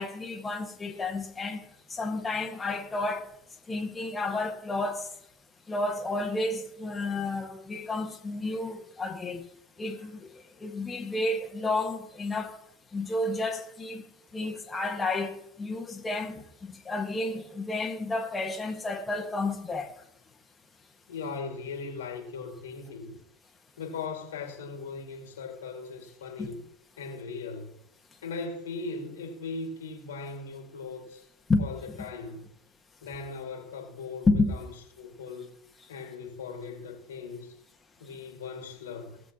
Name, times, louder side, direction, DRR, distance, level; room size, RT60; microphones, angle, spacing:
voice 1, 0.0-1.6 1.9-3.3 3.7-5.0 5.7-9.4 9.8-10.3 10.6-12.6 12.9-14.0 14.3-16.4 16.8-19.9 26.4-26.5 31.5-32.0 34.3-34.5, left 2 dB, 20° left, 1.5 m, -31 dB
voice 2, 21.1-23.2 23.8-26.6 27.0-27.8 28.2-31.2 31.6-32.5 33.0-34.7 35.0-35.5 35.9-37.6 38.0-39.2, left 4 dB, 80° left, 2.0 m, -39 dB
18.0 x 7.1 x 2.9 m
hypercardioid pair, 75°, 0 cm